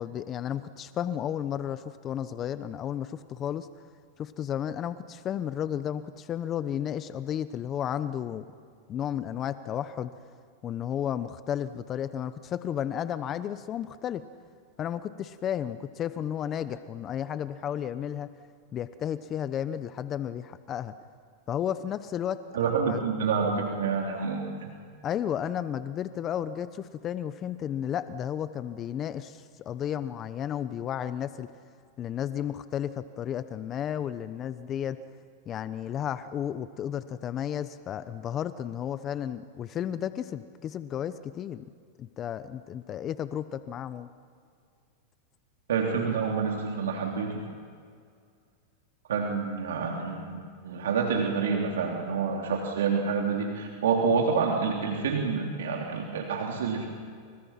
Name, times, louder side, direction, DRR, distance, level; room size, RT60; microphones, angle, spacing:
voice 1, 0.0-3.7 4.2-8.5 8.9-10.1 10.6-14.2 14.8-18.3 18.7-20.9 21.5-22.4 22.9-23.0 25.0-31.5 32.0-35.0 35.5-41.6 42.0-44.1, left 9 dB, 30° left, 13 dB, 0.9 m, -33 dB
voice 2, 22.5-24.4 45.7-47.4 49.1-56.9, right 5 dB, 85° right, 0 dB, 3.3 m, -28 dB
30.0 x 29.0 x 5.9 m, 2.2 s
hypercardioid pair, 120°, 0 cm